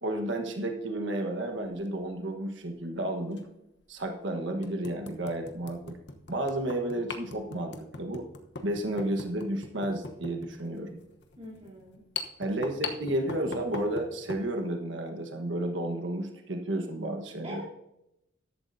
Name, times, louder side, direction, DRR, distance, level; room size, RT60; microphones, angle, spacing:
voice 1, 0.0-3.5 3.9-6.0 6.3-8.3 8.6-11.0 12.4-17.6, right 1 dB, 75° right, 4 dB, 1.4 m, -32 dB
sound 1, 1.6-1.9 3.3-3.4 4.0-4.1 4.6-14.5, left 4 dB, 65° left, 1.1 m, -41 dB
voice 2, 11.4-12.0 17.4-17.6, equal, 30° right, -9 dB, 3.5 m, -43 dB
14.0 x 11.5 x 2.8 m, 0.84 s
head